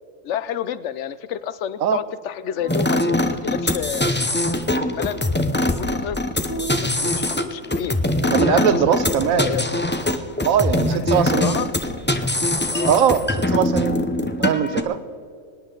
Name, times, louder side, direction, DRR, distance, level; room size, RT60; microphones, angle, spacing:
voice 1, 0.2-4.2 4.8-5.2 5.7-6.2 6.6-9.0 9.3-9.6 10.8-11.7 12.7-13.1 13.7-13.8, left 9 dB, 65° left, 15 dB, 0.9 m, -30 dB
sound 1, 2.6-8.4, right 2 dB, 15° right, 1.5 m, -40 dB
sound 2, 2.7-14.8, left 1 dB, 15° left, 0.4 m, -22 dB
voice 2, 8.3-9.5 10.4-11.6 12.8-14.0 14.4-15.0, right 8 dB, 85° right, 13 dB, 1.2 m, -20 dB
24.0 x 10.0 x 3.9 m, 2.3 s
omnidirectional pair, 1.4 m